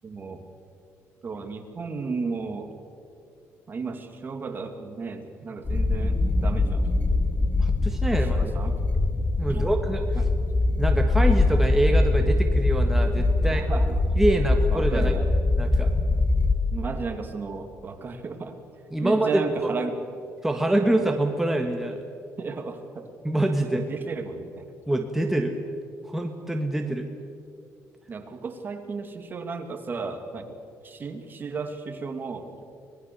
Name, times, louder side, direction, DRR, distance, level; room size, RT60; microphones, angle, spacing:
voice 1, 0.0-0.5 1.2-2.7 3.7-6.9 8.3-8.7 9.5-9.7 10.2-10.3 13.4-14.0 14.7-15.3 16.7-18.6 19.0-20.0 20.7-21.0 22.4-23.1 23.7-24.6 28.1-30.5 30.8-32.5, right 4 dB, 35° right, 6 dB, 2.4 m, -34 dB
sound 1, 5.7-16.5, left 2 dB, 20° left, 1.3 m, -22 dB
voice 2, 7.6-8.5 9.4-10.2 10.8-13.6 14.2-15.1 15.6-15.9 18.9-19.7 20.4-22.0 23.2-23.8 24.9-25.6 26.0-27.1, right 1 dB, 5° right, 3 dB, 1.6 m, -25 dB
25.0 x 20.0 x 7.0 m, 2.5 s
cardioid pair, 120°, 6 cm